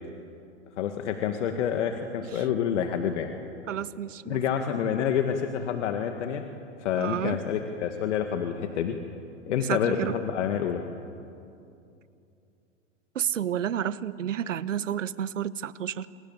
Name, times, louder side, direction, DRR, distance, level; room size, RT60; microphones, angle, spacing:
voice 1, 0.8-3.3 4.3-6.4 6.8-9.0 9.5-10.8, left 8 dB, 70° left, 5 dB, 2.2 m, -28 dB
voice 2, 3.7-4.4 7.0-7.4 9.7-10.1 13.1-16.1, right 10 dB, 85° right, 16 dB, 1.1 m, -30 dB
28.0 x 27.5 x 7.6 m, 2.6 s
hypercardioid pair, 115°, 37 cm